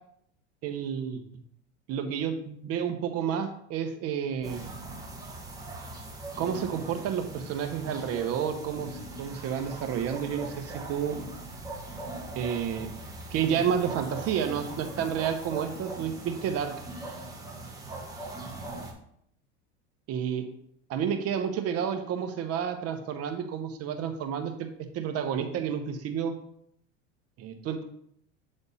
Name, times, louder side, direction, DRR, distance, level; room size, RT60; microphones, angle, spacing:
voice 1, 0.6-1.2 1.9-4.7 6.4-11.2 12.3-12.9 13.3-16.7 20.1-20.5 20.9-24.7 24.9-26.4 27.4-27.8, right 8 dB, 45° right, 7 dB, 0.9 m, -30 dB
sound 1, 4.4-18.9, right 2 dB, 10° right, 1.2 m, -40 dB
8.2 x 3.5 x 4.1 m, 0.70 s
supercardioid pair, 110°, 35 cm